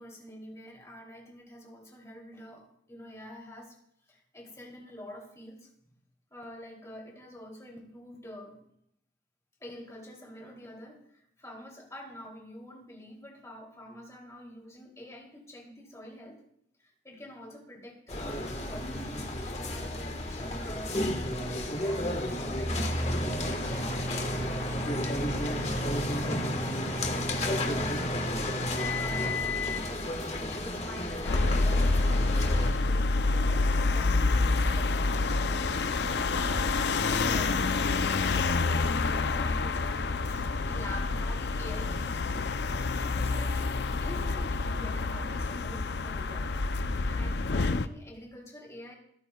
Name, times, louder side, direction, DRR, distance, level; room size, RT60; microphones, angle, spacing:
voice 1, 0.0-3.7 4.1-5.7 6.3-8.6 9.6-16.4 16.8-42.5 42.9-49.0, left 1 dB, 15° left, -1 dB, 2.9 m, -47 dB
sound 1, 18.1-32.7, left 1 dB, 35° left, 1.4 m, -31 dB
sound 2, 31.3-47.9, left 3 dB, 65° left, 0.5 m, -27 dB
27.0 x 9.2 x 2.3 m, 0.72 s
head